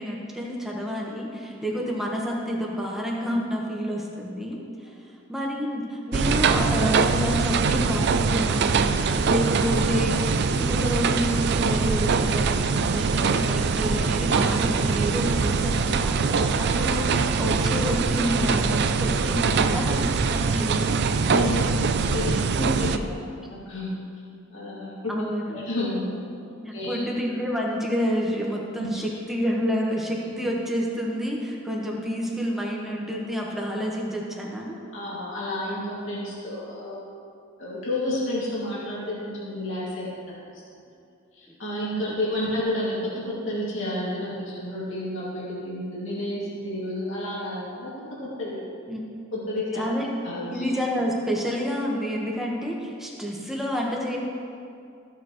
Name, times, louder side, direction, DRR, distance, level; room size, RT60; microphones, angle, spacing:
voice 1, 0.0-4.9 5.3-20.9 25.1-25.6 26.6-34.8 41.5-41.6 42.1-42.2 42.5-42.6 48.9-49.1 49.7-50.1 50.5-54.2, equal, ahead, -3 dB, 1.3 m, -29 dB
sound 1, 6.1-23.0, right 5 dB, 55° right, 0.4 m, -23 dB
voice 2, 21.3-23.1 23.4-23.9 24.5-24.9 25.5-26.2 26.7-27.0 28.8-29.0 30.3-30.4 34.9-37.0 37.6-40.2 41.6-47.9 48.2-48.6 49.3-49.8 50.2-50.6, left 1 dB, 70° left, -7 dB, 2.4 m, -30 dB
14.5 x 7.4 x 3.1 m, 2.4 s
head